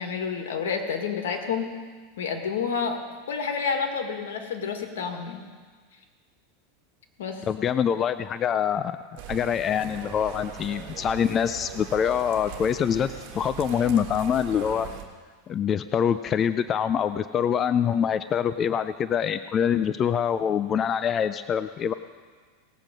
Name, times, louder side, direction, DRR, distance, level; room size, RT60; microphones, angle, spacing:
voice 1, 0.0-1.7 2.2-3.0 3.3-5.4 7.2-7.4, left 6 dB, 85° left, 4 dB, 1.8 m, -29 dB
voice 2, 7.5-9.0 9.3-14.9 15.5-21.9, left 8 dB, 30° left, 12 dB, 0.4 m, -25 dB
sound 1, 9.2-15.0, right 10 dB, 60° right, 1.6 m, -40 dB
18.5 x 7.4 x 5.2 m, 1.5 s
supercardioid pair, 140°, 0 cm